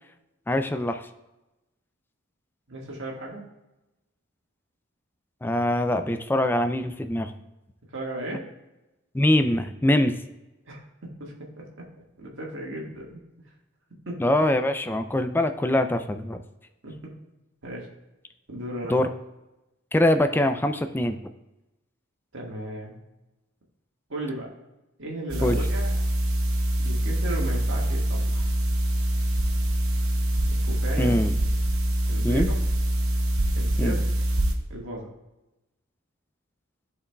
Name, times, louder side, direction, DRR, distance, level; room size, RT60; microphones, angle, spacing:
voice 1, 0.5-1.1 5.4-7.3 9.1-10.2 14.2-16.4 18.9-19.1 19.9-21.2 25.4-25.6 31.0-31.3 32.2-32.5 33.8-34.0, left 1 dB, 10° left, 8 dB, 0.4 m, -23 dB
voice 2, 2.7-3.4 7.9-8.4 10.6-10.8 11.2-11.6 12.2-13.2 14.1-14.2 16.8-17.1 17.6-17.9 18.5-19.1 22.3-23.0 24.1-24.5 25.0-26.0 26.8-28.5 30.5-31.1 32.1-32.5 33.5-34.0 34.7-35.1, right 1 dB, 65° right, -2 dB, 1.7 m, -35 dB
sound 1, 25.3-34.5, right 1 dB, 80° right, 0.9 m, -24 dB
11.5 x 4.7 x 2.3 m, 0.98 s
head